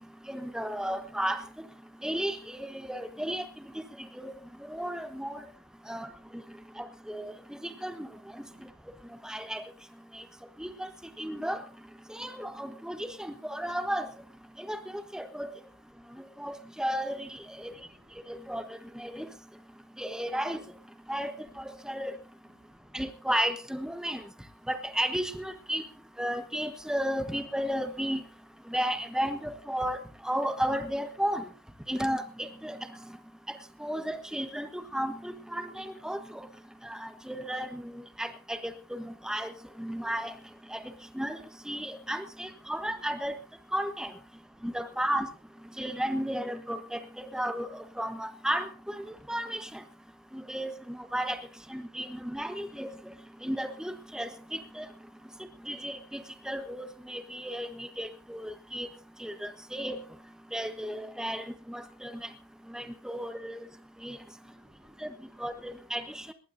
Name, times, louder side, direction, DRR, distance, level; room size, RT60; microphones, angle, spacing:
voice 1, 0.3-1.4 2.0-3.5 3.7-3.8 4.2-4.3 4.7-5.4 5.9-6.1 6.8-8.1 9.2-9.6 10.1-10.2 10.6-10.9 11.2-11.6 12.1-14.1 14.6-14.8 15.1-15.5 16.4-17.7 18.3-19.3 20.0-20.6 21.1-22.1 22.9-24.2 24.7-25.8 26.2-28.2 28.7-30.0 30.2-31.5 31.9-32.8 33.8-36.5 36.8-39.5 39.8-40.3 40.7-40.8 41.1-41.4 41.6-43.3 43.7-44.1 44.6-45.3 45.8-49.8 50.3-51.4 51.7-52.9 53.4-54.9 55.7-58.9 59.2-60.0 60.5-62.3 62.7-63.6 64.0-64.2 65.0-65.1 65.4-66.3, equal, 5° right, 8 dB, 1.1 m, -33 dB
voice 2, 17.5-18.1 22.5-22.6 53.1-53.2 55.2-55.4 63.1-63.2 64.3-65.4, right 1 dB, 80° right, -2 dB, 7.9 m, -69 dB
20.0 x 18.5 x 2.6 m, 0.33 s
head